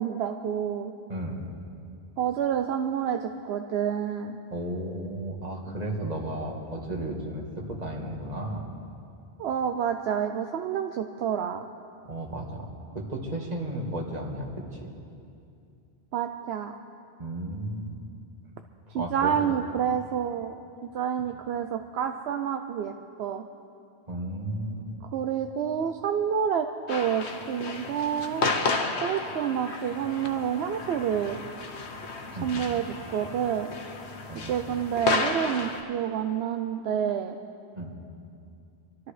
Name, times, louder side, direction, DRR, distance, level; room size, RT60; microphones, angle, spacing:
voice 1, 0.0-0.9 2.2-4.4 9.4-11.6 16.1-16.7 18.9-20.6 20.9-23.4 25.1-28.5 29.0-31.4 32.3-32.8 33.1-33.7 34.5-37.4, right 8 dB, 75° right, 6 dB, 0.8 m, -28 dB
voice 2, 1.1-1.5 4.5-8.7 12.0-14.5 14.8-14.9 17.2-18.0 18.9-19.4 24.1-24.9 32.3-32.5 34.3-34.5 37.7-37.9, right 1 dB, 40° right, 0 dB, 1.9 m, -34 dB
sound 1, 26.9-35.8, left 3 dB, 80° left, 1.3 m, -32 dB
25.0 x 13.0 x 3.3 m, 2.5 s
omnidirectional pair, 1.1 m